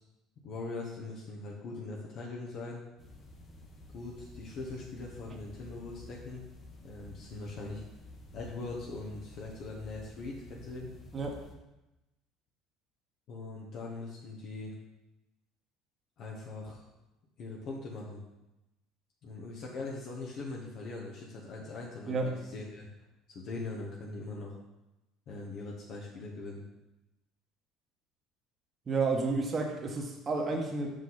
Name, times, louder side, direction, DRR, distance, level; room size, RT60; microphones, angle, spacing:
voice 1, 0.4-2.8 3.9-6.4 6.8-7.8 8.3-10.9 13.3-14.7 16.2-16.8 17.4-18.2 19.2-22.2 22.5-22.9 23.3-24.6 25.3-26.6, left 3 dB, 60° left, -3 dB, 1.1 m, -41 dB
sound 1, 3.0-11.5, left 1 dB, 35° left, 1.3 m, -51 dB
voice 2, 22.1-22.4 28.9-30.9, right 3 dB, 35° right, 2 dB, 1.2 m, -31 dB
5.5 x 5.2 x 4.0 m, 0.97 s
hypercardioid pair, 70°, 0 cm